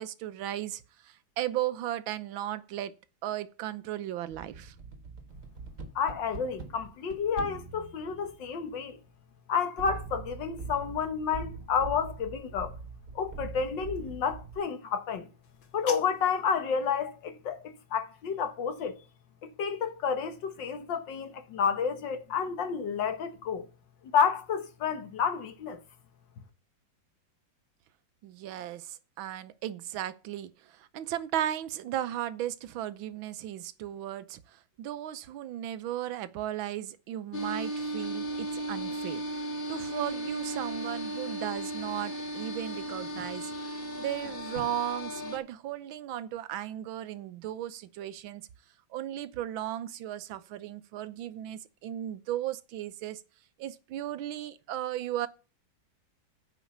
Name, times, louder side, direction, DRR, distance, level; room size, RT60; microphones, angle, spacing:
voice 1, 0.0-2.9 3.2-4.8 28.2-43.5 44.0-48.4 48.9-53.2 53.6-55.3, right 12 dB, 90° right, 1.6 m, -36 dB
sound 1, 4.3-9.0 9.8-14.6, right 4 dB, 45° right, 1.7 m, -43 dB
voice 2, 6.0-9.0 9.5-12.7 13.2-15.3 15.7-19.0 19.4-23.7 24.1-25.8, left 6 dB, 70° left, 1.9 m, -30 dB
sound 2, 15.4-16.4, left 6 dB, 85° left, 2.2 m, -44 dB
sound 3, 37.3-45.4, right 1 dB, 30° left, 1.6 m, -36 dB
9.2 x 5.4 x 7.1 m
omnidirectional pair, 2.1 m